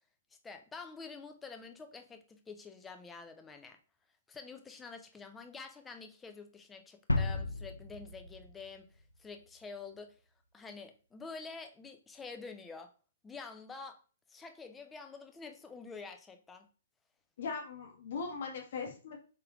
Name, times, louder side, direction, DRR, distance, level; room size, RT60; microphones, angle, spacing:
voice 1, 0.4-3.8 4.3-10.2 10.5-12.9 13.2-14.0 14.3-16.7, left 4 dB, 10° left, 6 dB, 0.6 m, -48 dB
sound 1, 7.1-9.2, left 2 dB, 85° left, 0.4 m, -34 dB
voice 2, 17.4-19.2, left 5 dB, 55° left, 1 dB, 1.1 m, -39 dB
3.6 x 3.4 x 3.0 m, 0.37 s
figure-of-eight pair, 120°, 0 cm